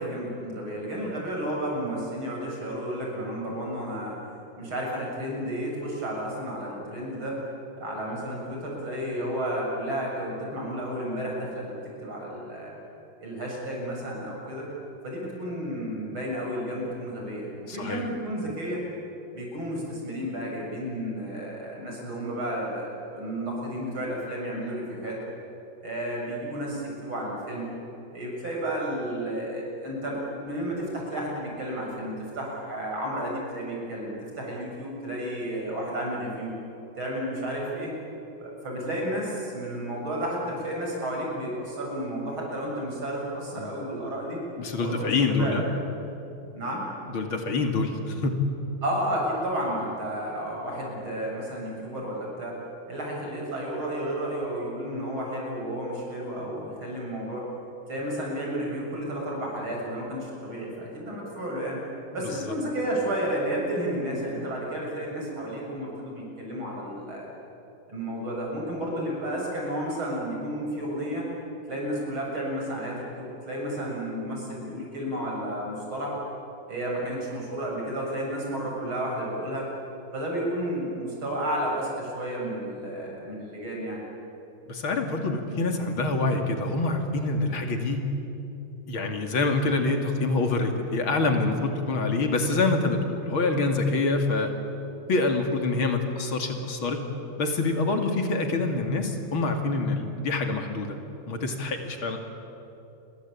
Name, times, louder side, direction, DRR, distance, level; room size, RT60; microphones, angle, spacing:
voice 1, 0.0-4.2 4.6-7.4 7.8-12.7 13.2-14.7 15.0-18.8 19.3-25.2 25.8-27.7 28.1-36.5 37.0-37.9 38.4-44.4 44.8-45.7 46.5-46.8 48.8-52.6 52.9-57.5 57.9-61.8 62.1-67.3 67.9-71.3 71.7-76.2 76.7-79.7 80.1-84.0, right 1 dB, 90° right, -2 dB, 8.1 m, -32 dB
voice 2, 17.7-18.0 43.5-43.7 44.6-45.6 47.1-48.4 62.4-62.5 84.7-88.1 88.9-94.5 95.1-97.0 97.4-101.0 101.3-102.2, left 3 dB, 85° left, 4 dB, 3.4 m, -26 dB
28.5 x 23.0 x 8.6 m, 3.0 s
omnidirectional pair, 2.2 m